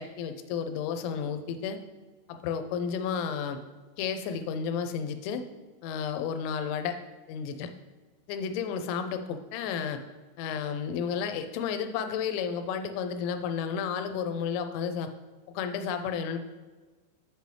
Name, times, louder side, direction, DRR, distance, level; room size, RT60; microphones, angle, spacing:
voice 1, 0.0-1.8 2.3-3.6 4.0-5.4 5.8-7.0 7.3-7.7 8.3-10.0 10.4-15.1 15.5-16.4, left 7 dB, 85° left, 8 dB, 2.9 m, -32 dB
7.9 x 6.8 x 3.3 m, 1.3 s
omnidirectional pair, 5.4 m